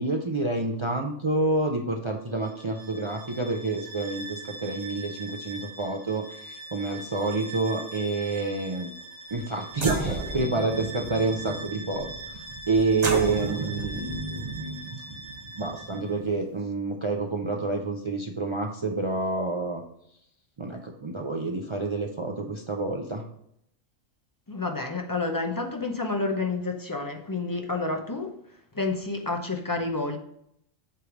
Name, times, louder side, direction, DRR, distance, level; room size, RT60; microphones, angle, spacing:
voice 1, 0.0-8.9 9.3-12.4 12.7-15.0 15.6-19.8 20.6-23.2, right 3 dB, 50° right, 2 dB, 0.3 m, -28 dB
Bowed string instrument, 2.3-16.2, right 2 dB, 90° right, 1.8 m, -42 dB
sound 1, 9.3-9.4 9.7-16.6, right 3 dB, 35° right, 0.9 m, -33 dB
voice 2, 24.5-28.4 28.7-30.2, left 3 dB, 25° left, 3 dB, 0.5 m, -29 dB
8.1 x 3.2 x 5.0 m, 0.73 s
omnidirectional pair, 1.3 m